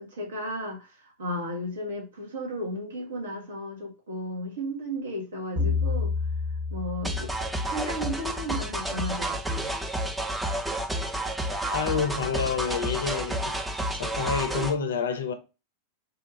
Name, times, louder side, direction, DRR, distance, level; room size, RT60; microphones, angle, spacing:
voice 1, 0.0-6.1 6.7-7.3 7.7-9.7, equal, 65° right, 1.0 m, -34 dB
sound 1, 5.6-8.3, left 4 dB, 35° right, 0.9 m, -30 dB
sound 2, 7.0-14.7, right 1 dB, 5° right, 0.4 m, -30 dB
voice 2, 11.7-13.6 13.9-15.3, left 6 dB, 65° left, 0.5 m, -28 dB
2.5 x 2.4 x 3.0 m
figure-of-eight pair, 90°, 0 cm